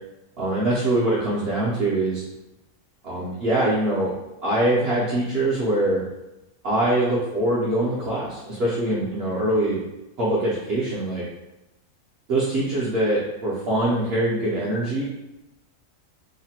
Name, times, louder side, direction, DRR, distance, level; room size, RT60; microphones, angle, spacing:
voice 1, 0.4-2.2 3.0-4.1 4.4-6.0 6.6-9.8 10.2-11.2 12.3-15.0, right 1 dB, 55° right, -8 dB, 0.8 m, -23 dB
3.1 x 2.1 x 2.8 m, 0.96 s
omnidirectional pair, 1.5 m